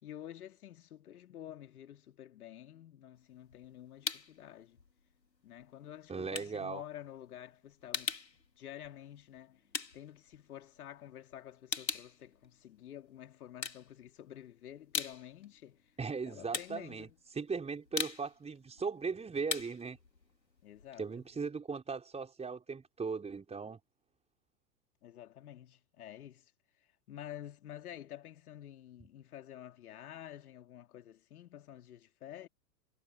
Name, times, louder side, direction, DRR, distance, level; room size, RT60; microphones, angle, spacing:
voice 1, 0.0-4.8 5.4-8.1 8.6-9.6 9.9-15.8 16.3-17.1 20.6-21.2 25.0-26.4 27.1-32.5, left 11 dB, 60° left, 3.3 m, -50 dB
sound 1, 3.2-4.4 4.8-11.0 11.3-13.1 13.5-14.4 14.7-21.4, left 4 dB, 85° left, 2.6 m, -41 dB
voice 2, 6.1-6.8 16.0-20.0 21.0-23.8, right 5 dB, 15° right, 5.1 m, -38 dB
figure-of-eight pair, 100°, 49 cm